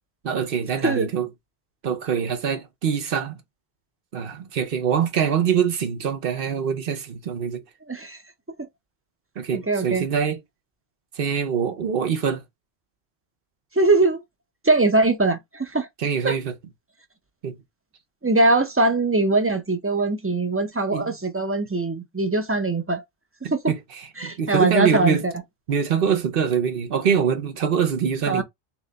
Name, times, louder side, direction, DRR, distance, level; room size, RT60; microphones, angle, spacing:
voice 1, 0.2-1.3 1.8-3.4 4.1-7.6 9.4-10.4 11.1-12.4 16.0-16.5 17.4-17.6 20.9-21.2 23.7-25.2 25.7-28.4, right 7 dB, 60° right, 0.8 m, -24 dB
voice 2, 7.9-8.2 9.5-10.1 13.8-14.2 14.6-15.9 16.2-16.4 18.2-23.0 24.2-25.3 28.3-28.4, right 2 dB, 15° right, 0.5 m, -21 dB
3.2 x 3.0 x 3.9 m
omnidirectional pair, 1.1 m